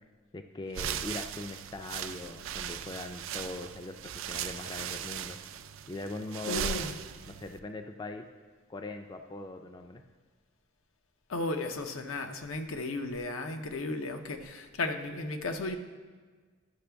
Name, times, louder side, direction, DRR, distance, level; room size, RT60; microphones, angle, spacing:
voice 1, 0.3-5.4 5.9-6.9 7.3-8.2 8.7-10.0, left 2 dB, 20° left, 6 dB, 0.3 m, -41 dB
sound 1, 0.7-7.6, right 9 dB, 75° right, 0.4 m, -38 dB
voice 2, 6.5-7.0 11.3-15.8, left 2 dB, 85° left, 6 dB, 0.7 m, -34 dB
11.5 x 5.9 x 3.4 m, 1.5 s
head